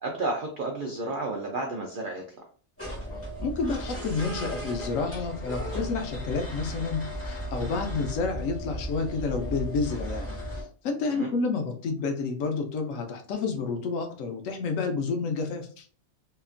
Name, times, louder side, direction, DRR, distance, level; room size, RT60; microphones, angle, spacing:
voice 1, 0.0-2.4 11.1-11.3, right 2 dB, 75° right, 1 dB, 0.4 m, -32 dB
sound 1, 2.8-10.6, equal, 15° left, 0.5 m, -35 dB
voice 2, 3.4-10.3 10.8-15.9, left 4 dB, 70° left, 4 dB, 0.9 m, -30 dB
2.9 x 2.4 x 2.4 m, 0.42 s
omnidirectional pair, 1.5 m